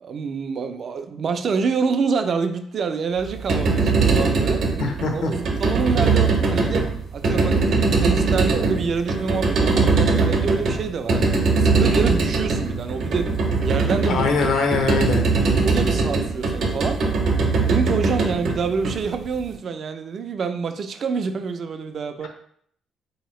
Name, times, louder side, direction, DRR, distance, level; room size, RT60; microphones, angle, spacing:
voice 1, 0.0-4.6 5.1-13.3 13.6-14.2 15.6-17.0 17.6-22.3, right 5 dB, 55° right, 8 dB, 0.3 m, -27 dB
sound 1, 3.3-19.4, right 4 dB, 70° right, 0.7 m, -21 dB
voice 2, 4.8-5.3 14.1-15.2, left 4 dB, 75° left, 4 dB, 0.6 m, -22 dB
3.6 x 2.8 x 3.1 m, 0.64 s
cardioid pair, 90°, 0 cm